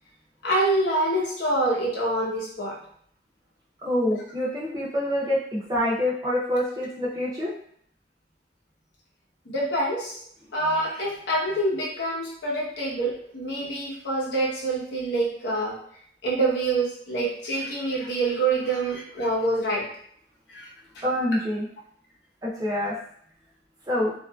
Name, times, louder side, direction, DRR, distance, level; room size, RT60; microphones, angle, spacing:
voice 1, 0.4-2.8 9.5-10.2 10.5-15.8 16.2-19.8 20.5-20.7, right 2 dB, 75° left, -3 dB, 0.9 m, -26 dB
voice 2, 3.8-7.5 21.0-21.7 22.4-22.9 23.8-24.1, left 1 dB, 20° right, -6 dB, 0.6 m, -26 dB
2.8 x 2.5 x 2.3 m, 0.63 s
head